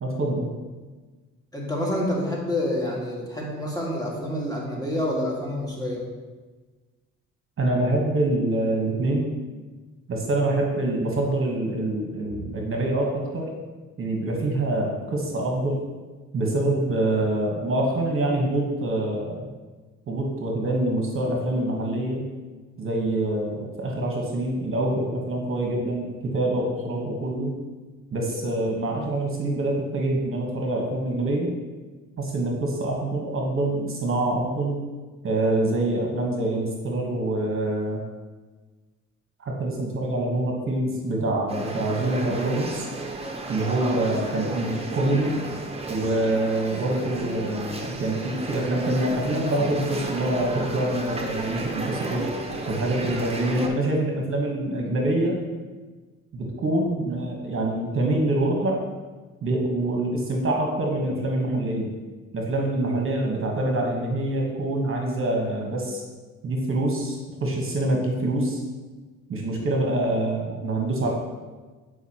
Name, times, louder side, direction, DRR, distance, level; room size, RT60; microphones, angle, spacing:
voice 1, 0.0-0.5 7.6-9.3 10.1-13.5 14.0-15.8 16.3-19.5 20.1-22.3 22.8-27.5 28.1-31.5 32.2-34.9 35.2-38.0 39.4-42.9 43.5-45.4 45.9-52.3 52.7-55.4 56.3-58.8 59.4-61.9 62.3-66.0 66.4-68.6 69.3-71.1, right 1 dB, 45° right, 0 dB, 1.1 m, -25 dB
voice 2, 1.5-6.0 12.3-12.4 44.3-44.6, left 1 dB, 10° left, -4 dB, 1.8 m, -28 dB
sound 1, 41.5-53.7, right 2 dB, 20° right, 0.8 m, -33 dB
8.0 x 4.8 x 2.9 m, 1.3 s
cardioid pair, 90°, 30 cm